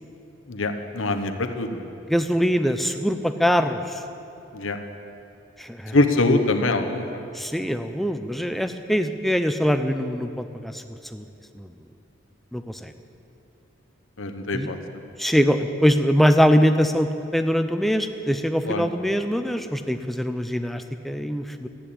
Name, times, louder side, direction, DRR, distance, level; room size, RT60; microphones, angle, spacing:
voice 1, 0.5-1.9 4.5-4.8 5.9-7.2 14.2-14.8 18.6-18.9, left 2 dB, 80° left, 6 dB, 1.0 m, -23 dB
voice 2, 2.1-4.0 5.6-6.0 7.3-10.8 11.1-11.2 11.6-11.7 12.5-12.9 14.5-14.7 15.2-21.7, equal, ahead, 8 dB, 0.5 m, -23 dB
13.5 x 9.1 x 8.5 m, 2.9 s
head